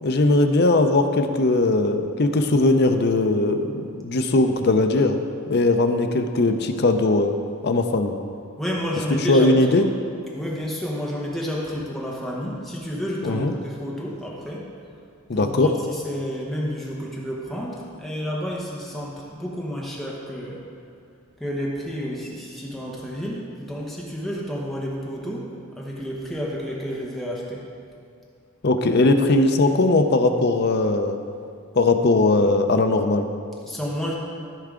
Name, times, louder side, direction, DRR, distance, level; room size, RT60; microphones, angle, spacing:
voice 1, 0.0-5.2 5.5-7.3 7.6-8.1 9.3-9.9 13.2-13.5 15.3-15.7 28.6-31.2 31.7-33.3, left 2 dB, 50° left, 6 dB, 0.6 m, -19 dB
voice 2, 8.6-9.8 10.3-14.7 15.3-20.6 21.4-27.7 33.7-34.1, equal, ahead, -4 dB, 1.0 m, -30 dB
14.0 x 4.7 x 3.7 m, 2.4 s
head